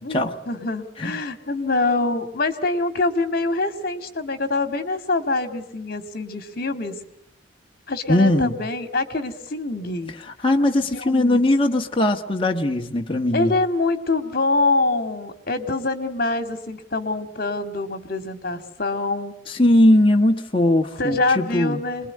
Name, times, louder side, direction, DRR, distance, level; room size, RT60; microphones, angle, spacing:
voice 1, 0.0-7.0 7.9-10.1 10.8-11.5 13.3-19.3 21.0-22.1, left 2 dB, 50° left, 2.2 m, -25 dB
voice 2, 8.1-8.6 10.4-13.5 19.5-21.8, left 1 dB, 30° left, 1.3 m, -19 dB
27.0 x 21.5 x 9.6 m
head